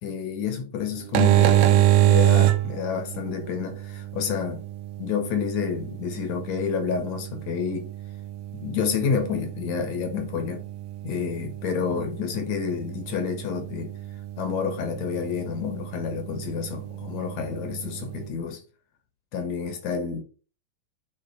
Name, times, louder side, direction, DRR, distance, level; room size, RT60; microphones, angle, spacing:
voice 1, 0.0-4.6 5.0-7.9 8.5-10.7 11.0-13.9 14.4-18.6 19.3-20.2, left 6 dB, 65° left, 2.1 m, -29 dB
sound 1, 1.0-18.3, right 13 dB, 80° right, 2.3 m, -27 dB
8.8 x 3.8 x 4.0 m
omnidirectional pair, 3.9 m